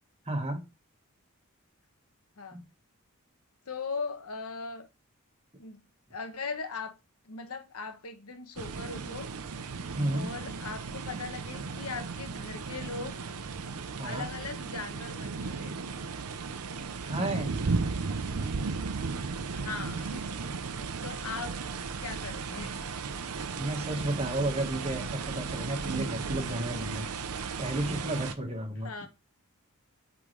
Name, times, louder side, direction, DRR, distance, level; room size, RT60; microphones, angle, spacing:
voice 1, 0.2-0.6 2.5-2.6 9.9-10.3 13.9-14.3 17.0-17.6 23.5-27.0 27.6-28.9, right 1 dB, 30° right, 1.5 m, -32 dB
voice 2, 3.7-4.9 5.6-5.8 6.1-6.9 7.2-9.3 10.1-13.2 14.0-15.8 19.3-20.2 21.0-21.6 22.0-22.8 28.8-29.1, left 4 dB, 75° left, 1.1 m, -39 dB
sound 1, 8.6-28.3, right 4 dB, 90° right, 0.7 m, -35 dB
8.5 x 3.8 x 3.2 m
head